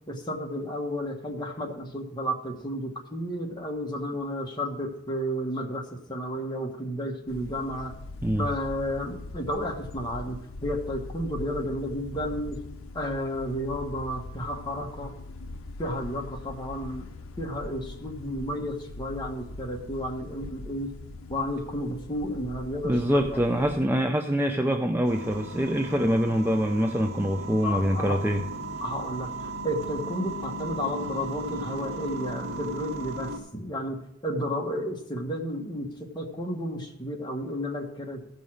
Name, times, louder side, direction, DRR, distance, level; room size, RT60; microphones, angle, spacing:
voice 1, 0.1-7.9 8.4-12.6 12.9-15.1 15.8-17.1 17.4-20.9 21.3-23.7 27.6-28.2 28.8-38.2, equal, 20° left, 1 dB, 1.5 m, -32 dB
sound 1, 7.3-23.9, left 2 dB, 70° left, 0.7 m, -41 dB
voice 2, 22.8-28.4, equal, 10° right, 5 dB, 0.4 m, -25 dB
sound 2, 25.0-33.4, right 1 dB, 65° right, 2.0 m, -36 dB
15.0 x 5.5 x 6.3 m, 0.84 s
head